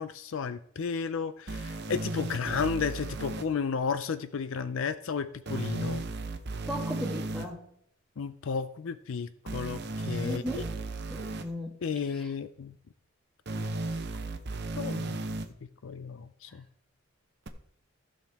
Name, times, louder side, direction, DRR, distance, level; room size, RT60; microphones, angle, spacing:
voice 1, 0.0-6.0 8.2-10.6 11.8-12.7 14.8-15.2 15.8-16.6, left 5 dB, 65° left, 13 dB, 0.4 m, -33 dB
sound 1, 1.5-3.4 5.5-7.5 9.5-11.4 13.5-15.5 17.5-17.6, right 2 dB, 50° right, 0.7 m, -35 dB
voice 2, 6.7-7.6 10.2-10.7 11.1-11.7 12.0-12.3 16.5-16.6, equal, ahead, -2 dB, 1.8 m, -37 dB
14.5 x 6.4 x 3.4 m, 0.72 s
head